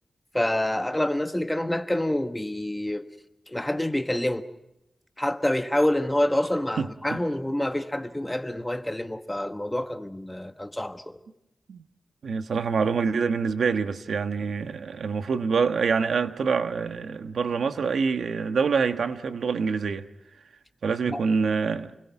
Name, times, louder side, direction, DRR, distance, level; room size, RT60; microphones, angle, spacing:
voice 1, 0.3-3.1 3.5-4.5 5.2-11.2 21.0-21.2, left 1 dB, 10° left, 1.4 m, -27 dB
voice 2, 6.8-7.2 11.7-11.8 12.2-20.1 20.8-21.9, right 5 dB, 90° right, 1.2 m, -26 dB
29.5 x 21.0 x 6.0 m
wide cardioid pair, 105°, 0 cm